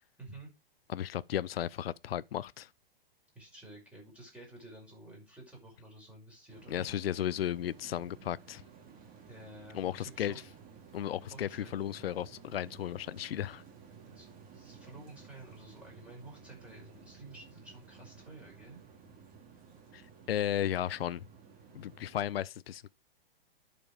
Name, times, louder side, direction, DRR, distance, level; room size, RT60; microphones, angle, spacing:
voice 1, 0.2-0.5 3.3-6.9 9.3-10.4 11.3-11.9 13.9-18.8, right 2 dB, 5° right, 5.6 m, -51 dB
voice 2, 0.9-2.7 6.7-8.6 9.7-10.3 10.9-13.6 19.9-21.2 21.7-22.9, left 11 dB, 75° left, 0.5 m, -34 dB
sound 1, 6.5-22.2, right 6 dB, 30° right, 2.8 m, -55 dB
11.0 x 5.2 x 5.1 m
hypercardioid pair, 115°, 30 cm